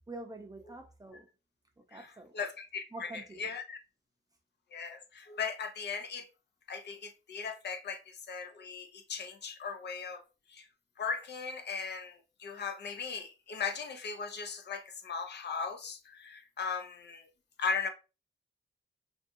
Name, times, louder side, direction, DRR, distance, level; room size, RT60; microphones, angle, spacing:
voice 1, 0.1-1.3 1.8-2.3 2.9-3.5, right 2 dB, 15° right, 0.6 m, -46 dB
voice 2, 2.3-3.8 4.7-6.2 6.7-10.2 10.5-10.7 11.0-17.2 17.6-17.9, left 5 dB, 55° left, 0.5 m, -38 dB
2.6 x 2.2 x 2.6 m
cardioid pair, 85°, 21 cm